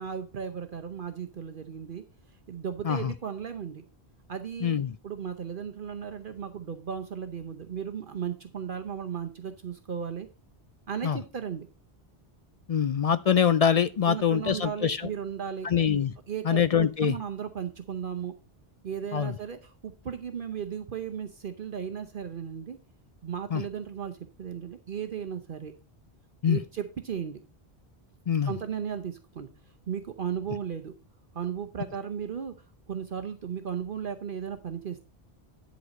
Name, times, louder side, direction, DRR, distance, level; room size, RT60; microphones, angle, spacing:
voice 1, 0.0-2.0 2.5-3.8 4.3-4.8 5.0-10.3 10.9-11.7 14.1-15.7 16.3-18.3 18.8-22.8 23.2-25.7 26.5-27.4 28.5-29.5 29.9-30.9 31.3-32.5 32.9-35.0, right 8 dB, 55° right, 0.9 m, -35 dB
voice 2, 4.6-4.9 11.0-11.2 12.7-15.0 15.6-16.1 16.4-17.1 19.1-19.3 23.5-23.6 26.4-26.6 28.3-28.5, left 8 dB, 55° left, 0.4 m, -24 dB
11.0 x 4.1 x 5.2 m
omnidirectional pair, 1.1 m